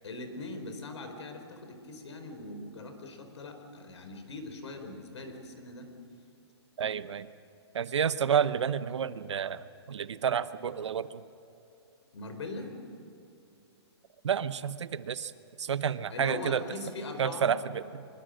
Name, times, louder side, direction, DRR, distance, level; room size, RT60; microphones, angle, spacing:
voice 1, 0.0-5.9 12.1-12.7 16.1-17.5, left 2 dB, 90° left, 6 dB, 4.6 m, -41 dB
voice 2, 6.8-7.3 7.7-9.6 9.9-11.2 14.2-15.3 15.6-16.6 17.2-18.1, right 8 dB, 85° right, 14 dB, 1.0 m, -30 dB
24.5 x 23.0 x 6.5 m, 2.6 s
hypercardioid pair, 170°, 14 cm